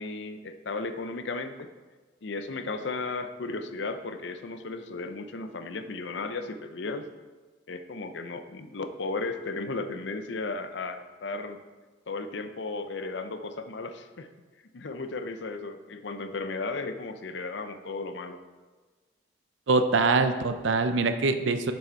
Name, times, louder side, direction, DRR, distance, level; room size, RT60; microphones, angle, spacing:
voice 1, 0.0-1.7 2.2-7.1 7.7-11.6 12.1-14.3 14.7-18.4, left 3 dB, 65° left, 9 dB, 0.6 m, -35 dB
voice 2, 19.7-21.7, right 3 dB, 75° right, 9 dB, 0.5 m, -24 dB
6.9 x 6.4 x 4.5 m, 1.3 s
head